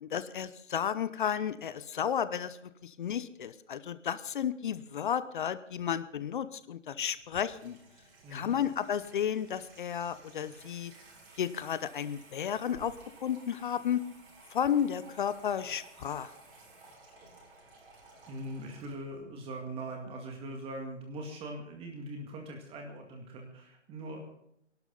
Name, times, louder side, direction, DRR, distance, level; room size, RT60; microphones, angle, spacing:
voice 1, 0.0-2.6 2.8-7.8 8.3-10.9 11.4-12.9 13.2-14.0 14.5-16.3, left 9 dB, 45° left, 14 dB, 0.9 m, -32 dB
Water tap faucet / Sink (filling or washing), 7.0-19.2, right 3 dB, 45° right, 7.4 m, -56 dB
voice 2, 8.2-8.6 18.3-24.3, right 1 dB, 15° right, 2 dB, 2.0 m, -41 dB
25.0 x 12.0 x 4.0 m, 0.77 s
figure-of-eight pair, 140°, 36 cm